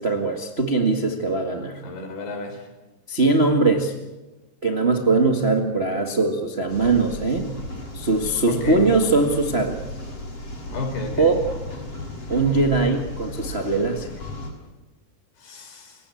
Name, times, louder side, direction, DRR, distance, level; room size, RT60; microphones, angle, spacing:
voice 1, 0.0-1.8 3.1-3.9 4.6-7.5 7.9-9.8 11.2-11.3 12.3-14.1, right 3 dB, 45° right, 3 dB, 0.7 m, -21 dB
voice 2, 1.8-2.6 8.5-8.8 10.7-11.3 15.4-16.0, left 3 dB, 75° left, 6 dB, 6.2 m, -32 dB
sound 1, 6.7-14.5, left 1 dB, 35° left, 6.9 m, -35 dB
30.0 x 17.5 x 8.6 m, 1.1 s
omnidirectional pair, 4.6 m